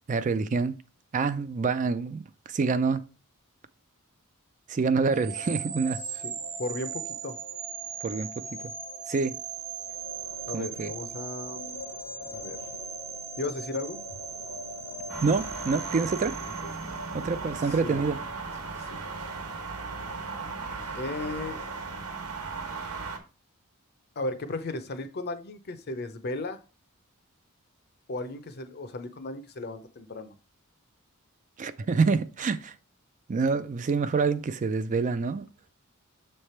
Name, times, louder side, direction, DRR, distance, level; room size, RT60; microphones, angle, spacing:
voice 1, 0.1-0.7 1.1-2.2 2.5-3.0 4.7-6.0 8.0-8.3 9.1-9.4 10.5-10.9 15.2-16.4 17.1-18.2 31.6-32.7 33.3-35.5, right 4 dB, 35° right, 0.3 m, -26 dB
sound 1, 5.1-17.2, right 6 dB, 60° right, 0.9 m, -39 dB
voice 2, 6.2-7.4 10.5-11.9 12.2-12.6 13.4-14.0 16.4-16.7 17.6-18.0 18.6-19.0 20.9-21.7 24.2-26.6 28.1-30.3, left 2 dB, 45° left, 0.7 m, -36 dB
Wind, 9.7-22.3, left 3 dB, 80° left, 1.2 m, -46 dB
sound 2, 15.1-23.2, right 4 dB, 80° right, 1.1 m, -37 dB
7.3 x 3.3 x 4.3 m
head